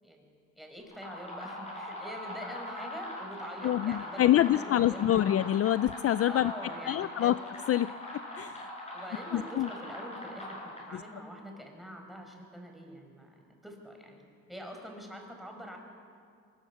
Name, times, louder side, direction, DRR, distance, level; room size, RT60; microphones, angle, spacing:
voice 1, 0.0-5.3 6.3-7.3 8.9-10.6 10.8-14.2 14.5-15.8, equal, ahead, 2 dB, 5.0 m, -45 dB
sound 1, 0.8-11.1, left 1 dB, 20° left, 7.9 m, -41 dB
voice 2, 3.6-6.5 6.8-7.4 7.7-7.9 8.4-8.7 9.3-9.7 10.9-11.0, left 12 dB, 50° left, 15 dB, 0.4 m, -26 dB
22.5 x 20.0 x 7.0 m, 2.2 s
cardioid pair, 90°, 30 cm